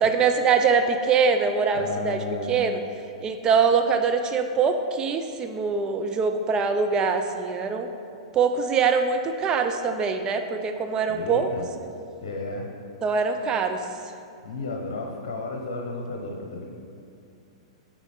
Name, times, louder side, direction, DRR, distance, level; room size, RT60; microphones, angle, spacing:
voice 1, 0.0-2.8 3.2-7.9 8.3-11.5 13.0-13.8, right 5 dB, 25° right, 6 dB, 0.4 m, -23 dB
voice 2, 1.7-2.6 11.1-11.7 12.2-12.7 14.4-16.6, left 2 dB, 60° left, 1 dB, 0.8 m, -33 dB
9.0 x 3.8 x 5.0 m, 2.6 s
figure-of-eight pair, 100°, 3 cm